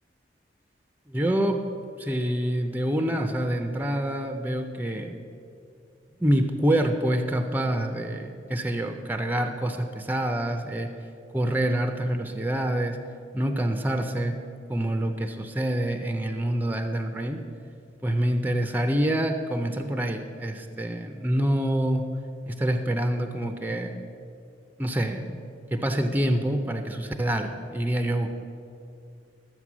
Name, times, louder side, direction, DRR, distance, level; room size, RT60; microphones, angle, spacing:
voice 1, 1.1-1.6 2.0-5.2 6.2-10.9 11.3-13.0 13.3-14.4 14.7-17.4 18.0-22.0 22.5-24.0 24.8-25.4 25.7-28.3, right 1 dB, 10° right, 5 dB, 0.5 m, -26 dB
13.0 x 7.8 x 6.1 m, 2.5 s
head